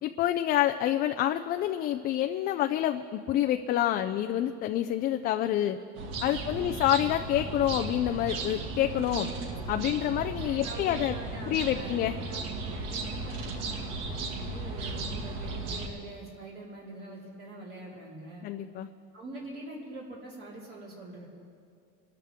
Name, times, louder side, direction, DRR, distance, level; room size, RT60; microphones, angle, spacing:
voice 1, 0.0-5.8 6.2-9.3 9.7-11.2 11.5-12.1 18.4-18.9, left 12 dB, 30° left, 7 dB, 0.3 m, -27 dB
sound 1, 5.9-15.9, right 3 dB, 70° right, 2.1 m, -36 dB
voice 2, 6.4-6.9 10.5-18.5 19.1-21.3, right 2 dB, 40° right, -6 dB, 4.1 m, -44 dB
26.5 x 13.5 x 3.6 m, 2.4 s
cardioid pair, 155°, 35 cm